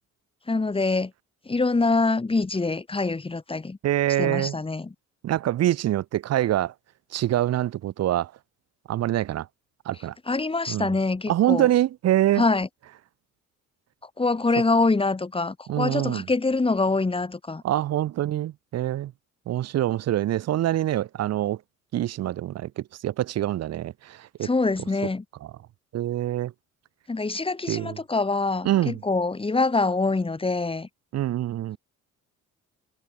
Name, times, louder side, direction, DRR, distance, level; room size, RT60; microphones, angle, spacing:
voice 1, 0.5-1.1 1.5-3.8 4.2-4.9 10.3-11.7 12.4-12.7 14.2-17.6 24.4-25.2 27.1-30.9, left 3 dB, 20° left, 1.5 m, -25 dB
voice 2, 3.8-4.6 5.2-6.7 7.1-8.3 8.9-9.5 9.9-10.1 10.7-10.9 11.3-12.4 15.7-16.3 17.6-19.1 19.5-21.6 21.9-24.5 25.9-26.5 27.7-28.0 28.6-29.0 31.1-31.8, right 13 dB, 55° right, 0.6 m, -25 dB
cardioid pair, 90°, 30 cm